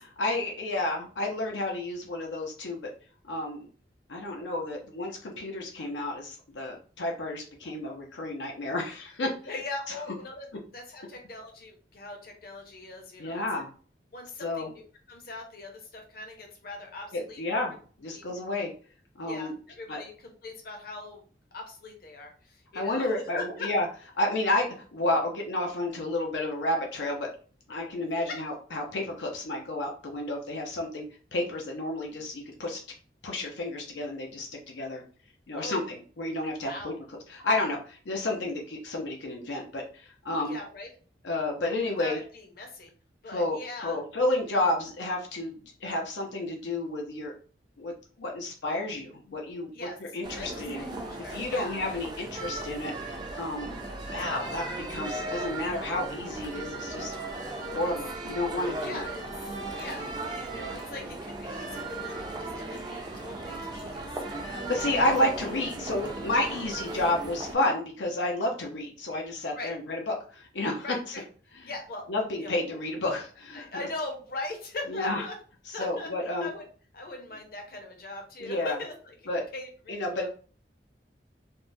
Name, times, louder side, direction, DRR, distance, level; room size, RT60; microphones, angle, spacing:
voice 1, 0.2-2.9 3.2-3.7 4.1-9.3 13.2-13.7 14.4-14.7 17.1-18.7 19.2-19.5 19.9-20.0 22.7-23.9 24.2-27.3 27.7-31.0 31.3-32.8 33.2-35.0 35.5-36.9 37.3-40.6 41.2-42.2 43.3-47.3 47.8-50.9 51.3-52.9 53.4-53.8 54.1-57.1 57.7-59.1 64.4-71.1 72.1-73.7 74.9-75.2 75.7-76.5 78.4-78.8 79.3-79.4 79.9-80.3, left 1 dB, 90° left, 1 dB, 0.6 m, -31 dB
voice 2, 9.5-10.5 10.7-13.4 14.1-14.8 15.1-17.4 18.1-18.2 19.3-21.2 21.5-23.7 28.2-28.4 35.6-35.9 36.6-37.0 40.5-40.9 42.0-42.9 43.2-44.0 49.7-50.0 50.3-51.8 57.8-57.9 58.8-59.2 59.8-64.1 64.8-65.1 69.5-69.7 70.8-71.2 71.7-72.0 72.4-72.5 73.5-75.3 75.7-76.1 76.4-76.6 76.9-79.1 79.5-80.3, left 2 dB, 55° left, 2 dB, 0.8 m, -40 dB
sound 1, 50.2-67.5, right 2 dB, 25° right, 0.4 m, -37 dB
3.5 x 2.1 x 2.6 m, 0.41 s
head